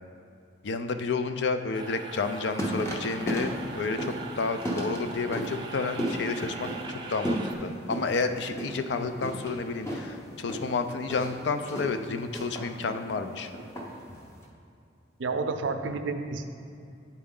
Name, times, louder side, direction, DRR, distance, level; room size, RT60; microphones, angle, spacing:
voice 1, 0.6-13.5, left 4 dB, 65° left, 8 dB, 0.4 m, -31 dB
sound 1, 1.7-7.6, right 4 dB, 25° right, 0.5 m, -41 dB
sound 2, 2.1-14.4, equal, 15° left, 0.7 m, -35 dB
voice 2, 15.2-16.4, right 4 dB, 85° right, 7 dB, 0.5 m, -30 dB
9.5 x 4.3 x 3.7 m, 2.6 s
head